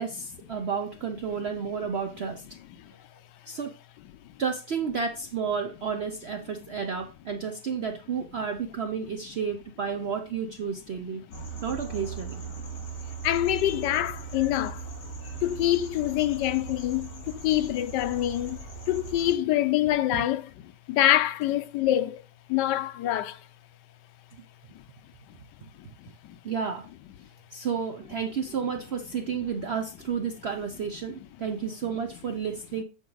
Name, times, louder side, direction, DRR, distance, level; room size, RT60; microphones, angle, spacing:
voice 1, 0.0-2.5 3.5-3.7 4.4-11.2 11.6-12.4 20.1-20.3 26.4-26.9 27.5-32.8, right 6 dB, 70° right, 0.6 m, -31 dB
sound 1, 11.3-19.3, right 5 dB, 55° left, 2.0 m, -39 dB
voice 2, 13.2-14.8 15.4-18.6 18.9-22.2 22.5-23.4 26.2-26.4, left 13 dB, 90° left, 1.2 m, -25 dB
9.1 x 4.5 x 3.9 m
omnidirectional pair, 1.8 m